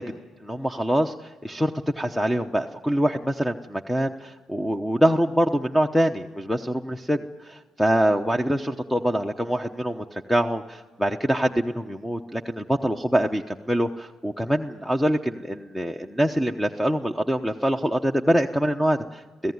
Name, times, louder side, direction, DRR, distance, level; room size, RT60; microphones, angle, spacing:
voice 1, 0.0-19.5, equal, 5° left, 6 dB, 0.9 m, -25 dB
27.5 x 16.5 x 9.6 m, 1.4 s
cardioid pair, 90°, 0 cm